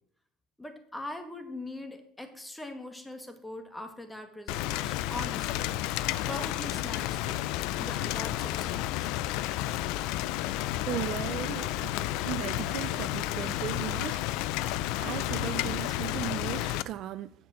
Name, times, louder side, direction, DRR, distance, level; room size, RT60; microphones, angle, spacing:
voice 1, 0.6-6.0 6.3-7.4 7.8-9.1, left 1 dB, 10° left, 1.8 m, -41 dB
Rain, 4.5-16.8, left 14 dB, 75° left, 0.4 m, -31 dB
voice 2, 10.9-14.5 15.0-17.3, right 13 dB, 55° right, 0.5 m, -37 dB
8.0 x 6.9 x 7.6 m
supercardioid pair, 110°, 0 cm